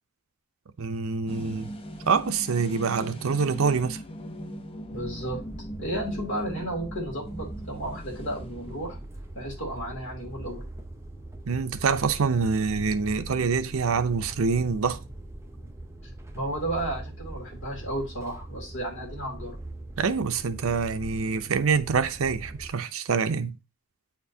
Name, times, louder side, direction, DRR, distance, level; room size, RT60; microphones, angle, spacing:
voice 1, 0.8-1.7 2.1-4.0 11.5-15.0 20.0-23.6, right 5 dB, 70° right, 0.6 m, -26 dB
sound 1, 1.3-9.2, equal, 25° left, 0.7 m, -40 dB
voice 2, 4.9-5.4 5.8-9.0 9.3-10.6 16.3-19.6, right 1 dB, 60° left, 2.7 m, -33 dB
sound 2, 4.9-22.7, right 1 dB, 10° right, 0.6 m, -42 dB
8.4 x 4.4 x 2.7 m
head